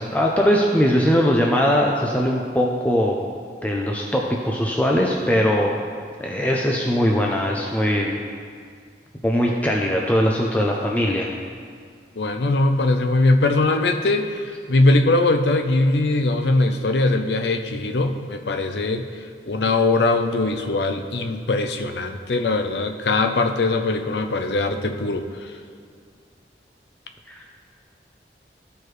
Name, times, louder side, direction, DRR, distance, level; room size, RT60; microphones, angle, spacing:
voice 1, 0.0-3.3 3.6-5.8 6.2-8.2 9.2-11.3 27.3-27.4, equal, 10° left, -1 dB, 0.4 m, -20 dB
voice 2, 12.2-19.0 19.4-25.5, left 2 dB, 75° left, 6 dB, 0.6 m, -21 dB
13.5 x 4.6 x 3.2 m, 2.2 s
head